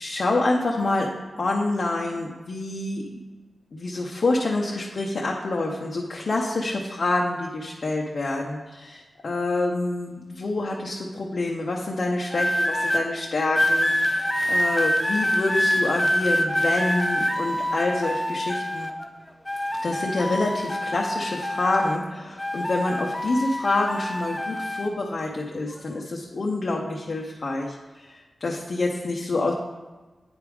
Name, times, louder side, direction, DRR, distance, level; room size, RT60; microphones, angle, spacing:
voice 1, 0.0-3.2 3.7-18.9 19.8-29.5, left 2 dB, 60° left, -2 dB, 0.9 m, -27 dB
sound 1, 12.3-13.0 13.6-19.1 19.5-22.1 22.4-24.9 25.7-26.0, left 1 dB, 10° left, 0.6 m, -25 dB
9.0 x 3.5 x 4.8 m, 1.3 s
cardioid pair, 60°, 0 cm